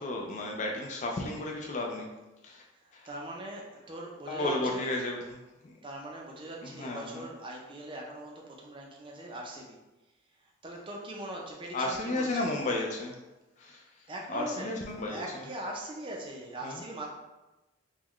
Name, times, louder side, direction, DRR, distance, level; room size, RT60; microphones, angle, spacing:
voice 1, 0.0-2.1 2.4-2.6 2.9-3.1 4.3-5.4 5.6-5.7 6.6-7.2 11.7-13.1 13.6-13.8 14.3-15.4 16.6-16.8, left 2 dB, 35° left, 0 dB, 0.3 m, -33 dB
voice 2, 3.1-4.8 5.8-9.8 10.6-12.5 14.1-14.8 15.1-17.1, right 1 dB, 25° right, -1 dB, 0.5 m, -41 dB
3.8 x 2.2 x 3.0 m, 1.1 s
head